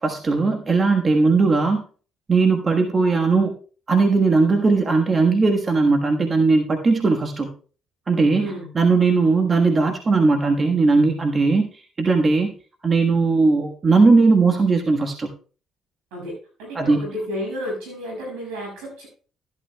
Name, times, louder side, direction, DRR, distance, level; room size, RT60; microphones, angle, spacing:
voice 1, 0.0-1.8 2.3-3.5 3.9-7.5 8.1-12.5 12.8-15.3 16.7-17.0, right 3 dB, 35° right, 3 dB, 1.4 m, -18 dB
voice 2, 8.3-8.7 16.1-19.1, equal, 90° right, -1 dB, 6.3 m, -32 dB
13.5 x 11.5 x 2.3 m, 0.38 s
supercardioid pair, 75°, 0 cm